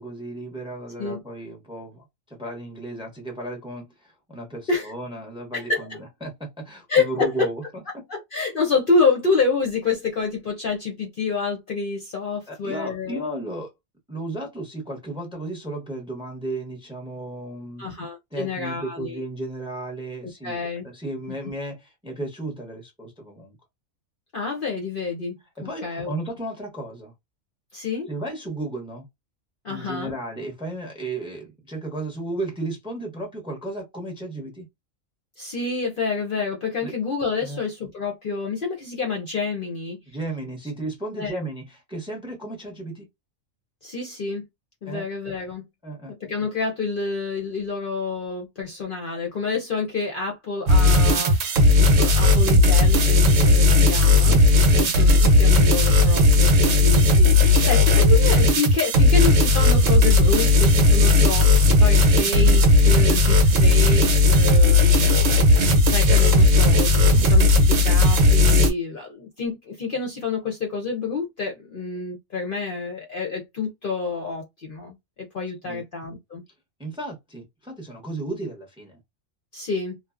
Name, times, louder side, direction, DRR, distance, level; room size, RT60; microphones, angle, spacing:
voice 1, 0.0-7.6 7.9-8.0 12.5-13.7 14.1-17.9 18.3-23.6 25.6-27.1 28.1-29.1 29.7-34.7 36.8-36.9 37.4-37.6 40.1-43.1 44.9-45.1 45.8-46.1 54.6-54.9 67.1-67.3 75.6-75.8 76.8-79.0, right 2 dB, 5° right, 0.6 m, -34 dB
voice 2, 5.5-6.0 6.9-7.5 8.1-13.2 17.8-19.2 20.4-20.9 21.3-21.4 24.3-26.1 27.7-28.1 29.6-30.2 35.4-40.0 41.2-41.4 43.8-44.4 44.8-45.7 46.1-51.4 51.8-54.4 54.7-65.1 65.8-76.4 79.5-80.0, left 4 dB, 50° left, 0.7 m, -28 dB
sound 1, 50.7-68.7, left 2 dB, 75° right, 1.1 m, -16 dB
2.7 x 2.2 x 2.4 m
omnidirectional pair, 1.4 m